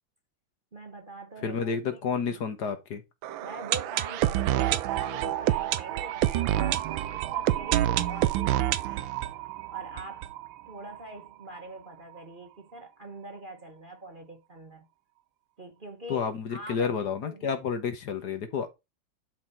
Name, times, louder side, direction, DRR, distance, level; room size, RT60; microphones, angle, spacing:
voice 1, 0.7-2.4 3.4-9.1 9.7-10.3 10.7-14.9 15.6-17.4, right 1 dB, 30° right, 1.3 m, -44 dB
voice 2, 1.4-3.0 16.1-18.7, left 6 dB, 60° left, 1.7 m, -30 dB
sound 1, 3.2-11.0 11.3-11.4 11.5-11.6 12.2-12.3, right 13 dB, 85° right, 1.4 m, -28 dB
11.5 x 4.1 x 4.5 m
omnidirectional pair, 2.1 m